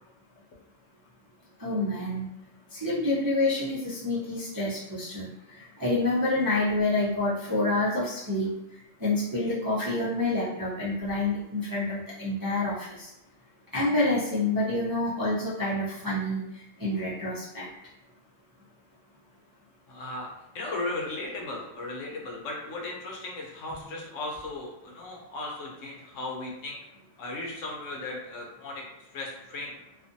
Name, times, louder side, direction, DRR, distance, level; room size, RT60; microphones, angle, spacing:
voice 1, 1.6-2.3 2.7-8.5 9.0-13.1 13.7-17.7, left 2 dB, 30° right, -10 dB, 0.4 m, -28 dB
voice 2, 19.9-20.3 20.5-26.8 27.2-28.8 29.1-29.7, left 2 dB, 75° left, -1 dB, 1.0 m, -36 dB
2.5 x 2.4 x 2.6 m, 0.85 s
omnidirectional pair, 1.3 m